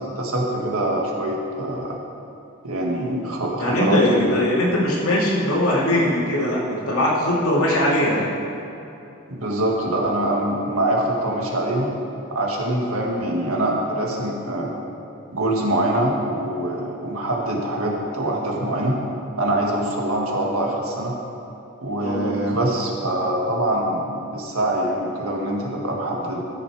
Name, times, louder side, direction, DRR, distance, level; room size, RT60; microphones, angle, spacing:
voice 1, 0.1-2.0 2.6-4.3 9.3-11.9 12.3-14.7 15.3-19.0 19.4-21.2 21.8-26.4, right 1 dB, 75° right, -1 dB, 1.7 m, -24 dB
voice 2, 3.6-8.3 22.0-22.4, left 1 dB, 85° left, -4 dB, 2.3 m, -21 dB
13.5 x 6.7 x 4.8 m, 2.9 s
head